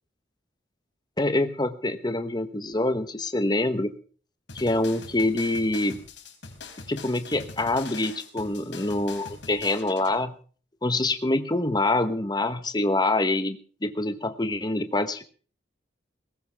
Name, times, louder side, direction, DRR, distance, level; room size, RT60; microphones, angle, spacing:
voice 1, 1.2-3.9 4.5-6.0 6.9-10.3 10.8-15.2, left 2 dB, 25° left, 11 dB, 1.1 m, -25 dB
sound 1, 4.5-10.1, left 4 dB, 75° left, 3.8 m, -43 dB
19.5 x 16.0 x 3.5 m, 0.40 s
head